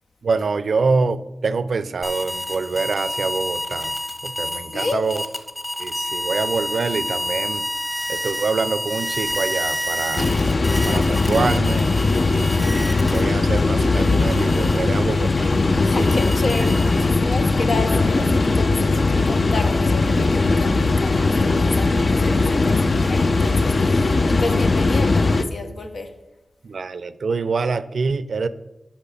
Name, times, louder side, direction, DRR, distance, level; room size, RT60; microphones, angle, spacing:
voice 1, 0.2-3.9 4.2-5.2 5.8-7.7 8.1-10.3 10.8-11.9 12.3-15.5 15.9-16.1 26.6-28.5, right 4 dB, 80° right, 15 dB, 0.4 m, -25 dB
sound 1, 2.0-13.5 13.9-17.3, equal, 20° left, 1.2 m, -29 dB
voice 2, 4.7-5.0 15.8-26.1, left 3 dB, 85° left, 5 dB, 1.0 m, -31 dB
sound 2, 10.2-25.4, left 3 dB, 55° left, 0.5 m, -19 dB
8.4 x 5.6 x 5.7 m, 0.99 s
wide cardioid pair, 70°, 0 cm